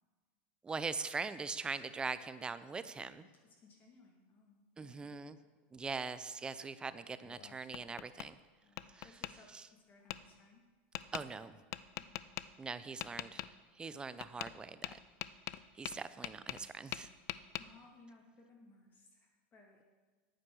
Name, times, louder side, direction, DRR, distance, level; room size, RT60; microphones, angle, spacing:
voice 1, 0.6-3.3 4.8-5.4 5.7-8.4 8.9-9.2 9.5-9.7 11.1-11.6 12.6-13.4 13.8-15.0 15.7-17.1, right 4 dB, 15° right, 14 dB, 0.5 m, -42 dB
voice 2, 3.4-5.2 8.6-10.6 11.9-12.2 17.6-19.8, left 3 dB, 30° left, 0 dB, 2.2 m, -62 dB
Tap, 7.2-8.3 8.8-9.3 10.1-10.2 10.9-11.2 11.7-12.5 13.0-13.5 14.2-14.6 14.8-16.7 16.9-17.6, left 16 dB, 50° left, 0.4 m, -42 dB
9.2 x 9.1 x 6.2 m, 1.4 s
supercardioid pair, 125°, 6 cm